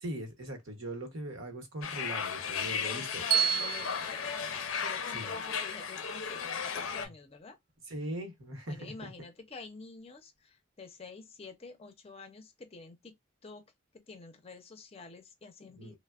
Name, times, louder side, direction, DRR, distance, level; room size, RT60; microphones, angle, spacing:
voice 1, 0.0-3.2 5.1-5.3 7.9-9.1 15.8-16.0, right 1 dB, 80° right, 0.9 m, -40 dB
sound 1, 1.8-7.1, left 6 dB, 90° left, 0.5 m, -35 dB
voice 2, 2.8-7.6 8.7-13.2 13.4-13.7 14.1-16.0, left 4 dB, 30° left, 0.5 m, -49 dB
Bell, 3.3-5.5, right 9 dB, 50° right, 0.6 m, -32 dB
3.2 x 2.0 x 2.3 m
head